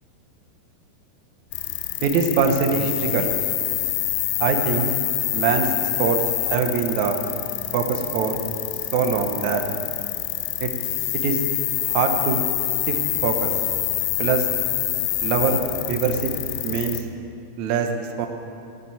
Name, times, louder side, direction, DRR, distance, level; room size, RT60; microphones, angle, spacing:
sound 1, 1.5-17.0, left 15 dB, 90° left, 2.9 m, -26 dB
voice 1, 2.0-3.3 4.4-4.9 5.3-5.7 6.0-7.2 7.7-8.4 8.9-9.6 10.6-10.7 11.2-11.4 11.9-12.5 12.9-13.5 14.2-14.5 15.2-15.6 15.9-16.3 16.6-17.0 17.6-17.9 18.2-18.3, right 6 dB, 85° right, 4 dB, 1.6 m, -23 dB
14.0 x 7.5 x 8.4 m, 2.6 s
omnidirectional pair, 4.9 m